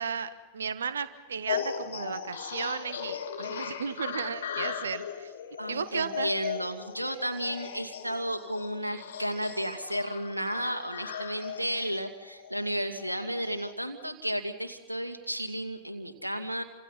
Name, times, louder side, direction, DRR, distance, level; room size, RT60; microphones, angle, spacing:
voice 1, 0.0-5.3 5.7-6.3, right 6 dB, 70° right, 14 dB, 1.3 m, -34 dB
sound 1, 1.5-13.7, left 8 dB, 65° left, 2.5 m, -38 dB
voice 2, 5.6-16.6, equal, 85° right, 7 dB, 2.4 m, -33 dB
30.0 x 26.5 x 5.7 m, 1.2 s
figure-of-eight pair, 90°, 0 cm